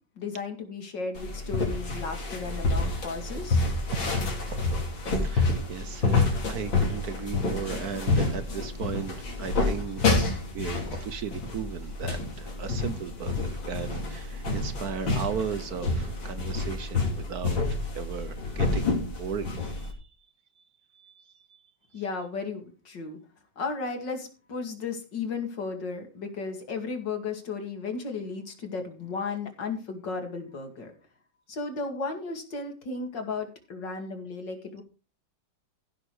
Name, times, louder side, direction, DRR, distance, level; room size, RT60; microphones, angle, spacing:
voice 1, 0.2-3.6 21.9-23.2 23.6-30.9 31.5-34.8, left 4 dB, 65° left, 3.0 m, -34 dB
sound 1, 1.2-19.9, left 3 dB, 85° left, 3.8 m, -28 dB
voice 2, 5.2-20.0 20.6-20.7 20.9-21.6, right 7 dB, 60° right, 1.2 m, -36 dB
15.5 x 6.6 x 4.8 m
omnidirectional pair, 2.1 m